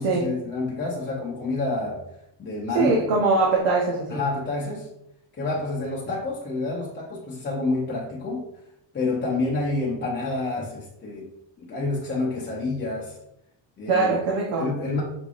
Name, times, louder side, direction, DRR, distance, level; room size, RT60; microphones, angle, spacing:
voice 1, 0.0-2.0 2.4-3.2 4.1-4.9 5.3-8.4 8.9-11.3 11.6-13.2 13.8-14.2 14.6-15.0, left 3 dB, 25° left, -5 dB, 0.7 m, -28 dB
voice 2, 2.7-4.2 13.9-14.7, right 3 dB, 75° right, -2 dB, 1.0 m, -22 dB
5.9 x 3.3 x 2.5 m, 0.81 s
cardioid pair, 145°, 47 cm